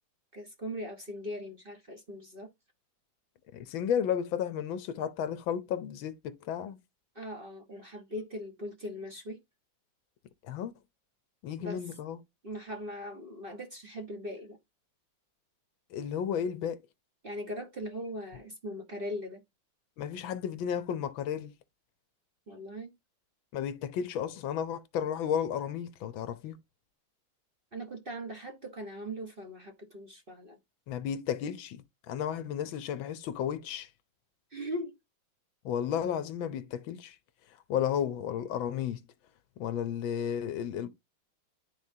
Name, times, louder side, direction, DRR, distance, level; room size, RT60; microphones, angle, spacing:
voice 1, 0.3-2.5 7.1-9.4 11.6-11.8 12.4-14.6 17.2-19.4 22.5-22.9 27.7-30.6 34.5-35.0, equal, 30° right, 1.2 m, -40 dB
voice 2, 3.5-6.8 10.4-10.7 11.4-12.2 15.9-16.8 20.0-21.5 23.5-26.6 30.9-33.9 35.6-37.2 37.7-39.0 39.6-40.9, left 8 dB, 75° left, 1.5 m, -33 dB
12.0 x 4.1 x 2.7 m
omnidirectional pair, 2.2 m